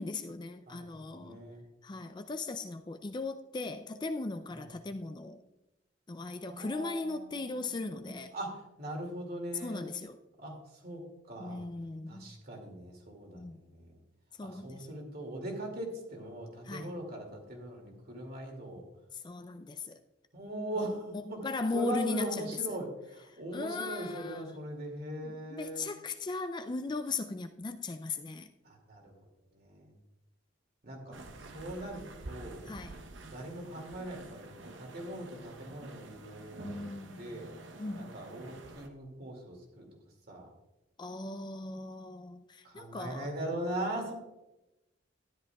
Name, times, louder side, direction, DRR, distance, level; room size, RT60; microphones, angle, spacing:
voice 1, 0.0-1.4 1.8-5.4 6.1-8.3 9.6-10.2 11.4-12.4 13.3-13.6 14.4-14.9 16.7-16.9 19.1-20.0 20.8-20.9 21.4-22.3 23.5-24.4 25.2-28.5 32.7-32.9 36.6-37.4 37.8-38.1 41.0-43.3, left 3 dB, 25° left, 0.4 m, -38 dB
voice 2, 0.7-1.6 4.5-4.7 6.5-9.8 10.4-11.0 11.3-11.7 12.1-14.0 14.4-18.8 20.3-21.5 21.7-25.9 28.6-29.1 29.5-30.0 30.8-32.7 33.2-37.5 38.0-39.9 40.3-40.5 42.6-44.1, right 1 dB, 50° right, 2.4 m, -41 dB
sound 1, 31.1-38.9, right 2 dB, 70° right, 0.9 m, -49 dB
12.5 x 11.0 x 2.3 m
head